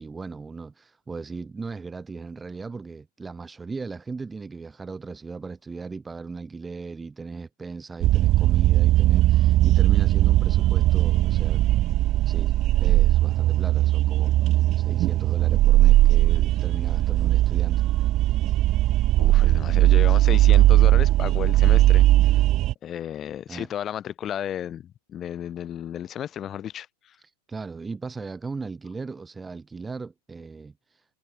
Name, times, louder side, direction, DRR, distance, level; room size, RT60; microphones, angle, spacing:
voice 1, 0.0-11.6 12.3-12.5 12.8-17.8 23.5-23.7 27.2-31.1, right 4 dB, 10° right, 7.6 m, -37 dB
sound 1, 8.0-22.7, right 15 dB, 35° right, 0.8 m, -19 dB
voice 2, 19.2-22.4 22.8-27.2, left 10 dB, 25° left, 1.8 m, -33 dB
figure-of-eight pair, 90°, 0 cm